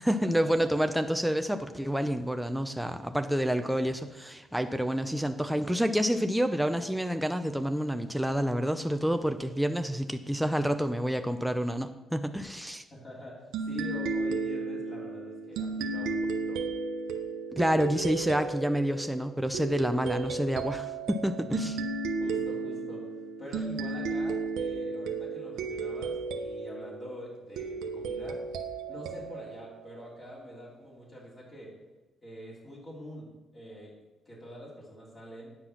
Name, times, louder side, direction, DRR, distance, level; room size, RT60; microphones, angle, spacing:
voice 1, 0.0-12.8 17.5-21.8, equal, ahead, 7 dB, 0.6 m, -28 dB
voice 2, 12.9-16.6 21.6-21.8 22.1-23.1 23.4-28.4 28.9-31.8 32.2-33.9 34.3-35.6, equal, 35° left, -5 dB, 3.3 m, -45 dB
sound 1, 13.5-30.7, right 4 dB, 90° right, 0.8 m, -34 dB
9.8 x 5.9 x 5.9 m, 1.1 s
cardioid pair, 90°, 0 cm